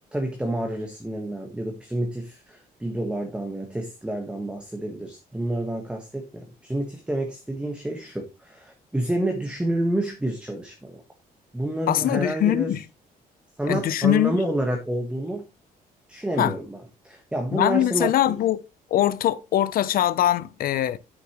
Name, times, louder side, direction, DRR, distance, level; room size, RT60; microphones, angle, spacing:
voice 1, 0.1-11.0 11.5-12.7 13.6-15.4 16.1-16.8 17.0-18.3, right 1 dB, 5° right, 1.3 m, -29 dB
voice 2, 11.9-12.8 13.7-14.4 16.4-16.5 17.5-18.6 18.9-21.0, left 12 dB, 65° left, 0.7 m, -22 dB
9.2 x 7.3 x 3.0 m
cardioid pair, 160°, 16 cm